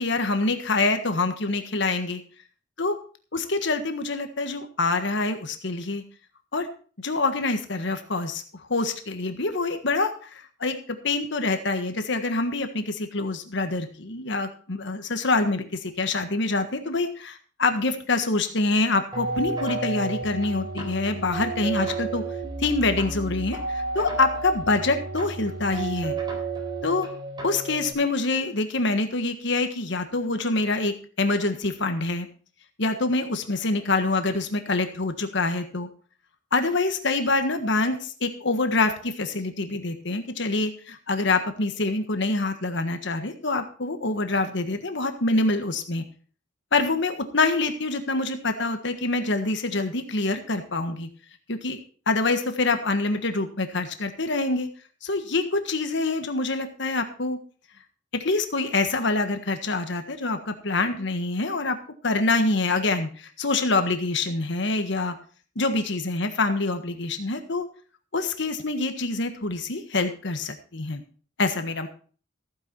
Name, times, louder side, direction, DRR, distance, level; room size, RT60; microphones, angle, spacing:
voice 1, 0.0-2.2 2.8-2.9 3.3-6.0 6.5-6.7 7.0-8.4 8.7-22.2 22.6-26.2 26.8-27.1 27.4-32.3 32.8-35.9 36.5-46.0 46.7-51.1 51.5-51.8 52.1-54.7 55.0-57.4 58.1-61.8 62.0-65.2 65.5-67.6 68.1-71.0 71.4-71.9, left 3 dB, 65° left, 7 dB, 1.5 m, -26 dB
sound 1, 19.1-27.9, right 3 dB, 25° right, 3.8 m, -32 dB
15.0 x 9.4 x 4.4 m, 0.40 s
head